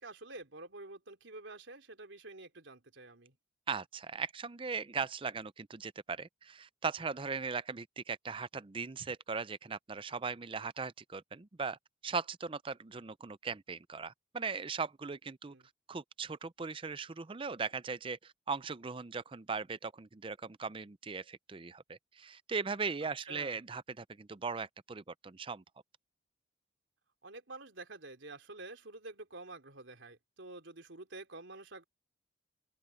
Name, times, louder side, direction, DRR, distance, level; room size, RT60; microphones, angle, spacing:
voice 1, 0.0-3.4 15.5-15.7 23.2-23.6 27.2-31.8, right 2 dB, 85° right, 3.3 m, -49 dB
voice 2, 3.7-11.8 12.0-15.5 15.9-25.6, right 5 dB, 30° right, 0.5 m, -39 dB
open air
head